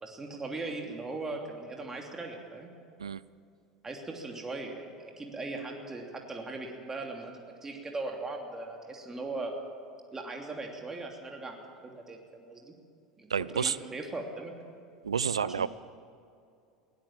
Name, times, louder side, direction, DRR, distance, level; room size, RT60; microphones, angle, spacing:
voice 1, 0.0-2.7 3.8-7.3 7.6-9.5 10.1-11.6 11.8-12.7 13.2-14.5 15.4-15.7, right 3 dB, 15° right, 1 dB, 3.0 m, -39 dB
voice 2, 13.3-13.8 15.0-15.7, right 7 dB, 85° right, 20 dB, 0.4 m, -29 dB
21.5 x 17.5 x 7.5 m, 2.5 s
figure-of-eight pair, 75°, 3 cm